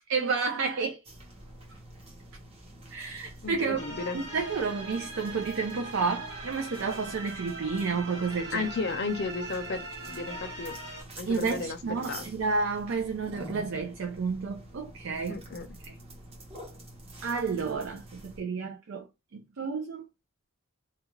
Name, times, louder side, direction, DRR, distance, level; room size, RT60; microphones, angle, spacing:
voice 1, 0.1-1.0 2.9-3.9 4.1-8.7 11.3-15.4 15.8-15.9 17.2-19.1 19.3-20.1, right 4 dB, 70° right, 0.4 m, -31 dB
sound 1, 1.0-18.4, right 1 dB, 30° right, 0.8 m, -47 dB
voice 2, 3.4-4.2 8.5-9.8 10.1-10.8 11.2-11.8 12.1-12.3 15.3-15.8, left 4 dB, 55° left, 0.5 m, -34 dB
sound 2, 3.8-11.0, right 2 dB, 85° right, 1.1 m, -41 dB
2.4 x 2.2 x 3.0 m
head